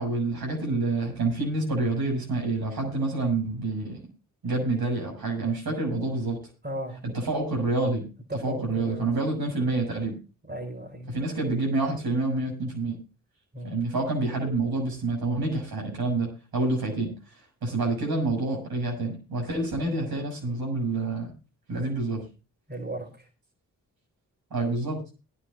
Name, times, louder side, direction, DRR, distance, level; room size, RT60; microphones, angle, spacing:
voice 1, 0.0-4.0 4.4-6.4 7.0-8.1 8.3-10.2 11.1-13.0 13.6-21.3 21.7-22.2 24.5-25.0, right 2 dB, 70° right, 0 dB, 6.8 m, -28 dB
voice 2, 6.6-7.0 8.3-9.1 10.4-11.2 13.5-13.7 22.7-23.3, right 1 dB, 25° right, 2 dB, 5.1 m, -36 dB
22.5 x 10.5 x 2.6 m, 0.31 s
supercardioid pair, 45°, 38 cm